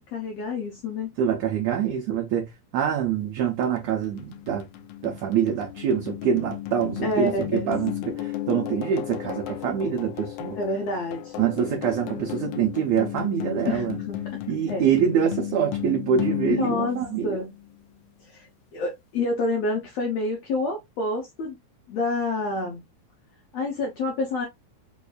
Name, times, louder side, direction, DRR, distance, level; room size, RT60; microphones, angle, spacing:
voice 1, 0.0-1.1 7.0-7.7 10.5-11.3 13.7-14.2 14.7-14.9 16.4-17.5 18.3-21.6 21.9-22.8 23.5-24.5, left 2 dB, 70° left, 1.6 m, -28 dB
voice 2, 1.2-4.7 5.0-10.6 11.4-14.0 14.5-17.4, right 8 dB, 70° right, 1.6 m, -25 dB
sound 1, 3.6-17.8, left 13 dB, 90° left, 1.7 m, -34 dB
5.2 x 2.6 x 2.3 m
omnidirectional pair, 3.9 m